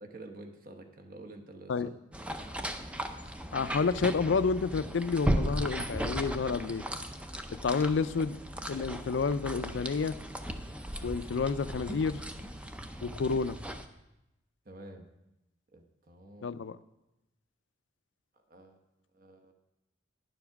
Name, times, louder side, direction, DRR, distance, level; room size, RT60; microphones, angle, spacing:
voice 1, 0.0-1.7 14.6-15.1 15.7-16.5 18.5-18.8 19.1-19.5, right 2 dB, 45° right, 4 dB, 1.0 m, -48 dB
sound 1, 2.1-13.9, right 1 dB, 5° right, 0.4 m, -37 dB
voice 2, 3.5-6.8 7.5-8.4 8.7-10.2 11.0-12.2 13.0-13.6 16.4-16.8, left 5 dB, 70° left, 14 dB, 0.4 m, -30 dB
sound 2, 4.7-5.0 6.1-7.4 7.8-7.9 9.0-9.3 9.6-9.9 10.4-10.8 11.1-12.7, equal, 10° left, 0.8 m, -47 dB
10.5 x 7.2 x 5.8 m, 0.92 s
head